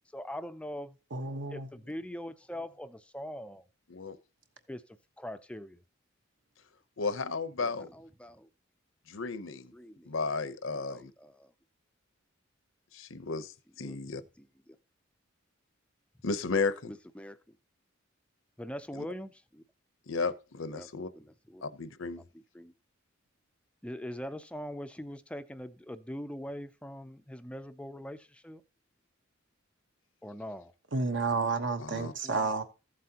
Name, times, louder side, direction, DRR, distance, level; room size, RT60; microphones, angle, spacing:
voice 1, 0.1-1.0 1.5-3.6 4.7-4.8 5.2-5.8 7.6-8.5 9.7-10.1 10.7-11.5 13.8-14.0 16.9-17.4 18.6-19.6 20.7-20.9 21.1-21.6 22.3-22.7 23.8-28.6 30.2-30.7 32.2-32.6, equal, 5° left, 0.4 m, -42 dB
voice 2, 1.1-1.7 30.9-32.6, right 4 dB, 60° right, 1.1 m, -31 dB
voice 3, 7.0-7.9 9.1-9.7 10.1-11.1 12.9-14.2 16.2-16.9 18.9-19.0 20.1-21.1 21.6-22.2 31.8-32.1, left 4 dB, 75° left, 0.8 m, -34 dB
14.5 x 7.6 x 2.9 m
head